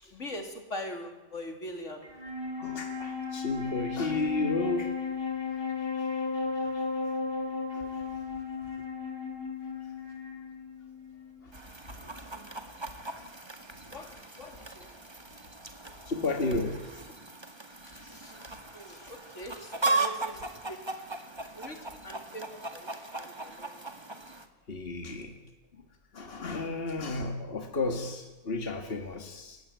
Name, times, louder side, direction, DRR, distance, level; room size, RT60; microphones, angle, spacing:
voice 1, 0.1-2.1 8.6-8.7 11.9-12.0 12.9-13.0 13.9-14.9 17.9-18.3 18.7-20.8 21.6-23.7, left 1 dB, 80° left, 5 dB, 3.9 m, -42 dB
Wind instrument woodwind instrument, 2.0-11.5, left 5 dB, 20° left, 4.4 m, -35 dB
voice 2, 2.6-4.9 7.7-7.8 16.1-16.8 18.0-18.2 24.7-25.4 26.1-29.6, left 2 dB, 50° left, 5 dB, 2.2 m, -32 dB
Chicken rooster, 11.5-24.5, right 3 dB, 20° right, 2.0 m, -37 dB
29.5 x 16.0 x 9.3 m, 1.1 s
omnidirectional pair, 1.3 m